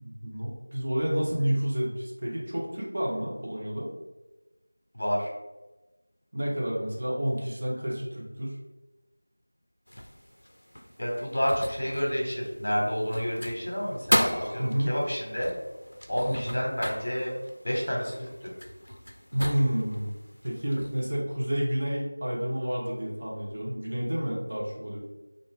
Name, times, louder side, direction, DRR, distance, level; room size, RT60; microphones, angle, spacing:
voice 1, 0.0-3.9 6.3-8.5 14.6-14.9 16.4-16.6 19.3-20.1 20.4-25.0, equal, 40° right, -4 dB, 0.6 m, -29 dB
voice 2, 4.9-5.3 11.0-15.5 16.1-17.3 17.6-18.5, equal, 55° left, -2 dB, 0.9 m, -29 dB
sound 1, 9.9-21.1, equal, 80° left, 0.4 m, -35 dB
2.5 x 2.4 x 3.5 m, 1.1 s
figure-of-eight pair, 175°, 0 cm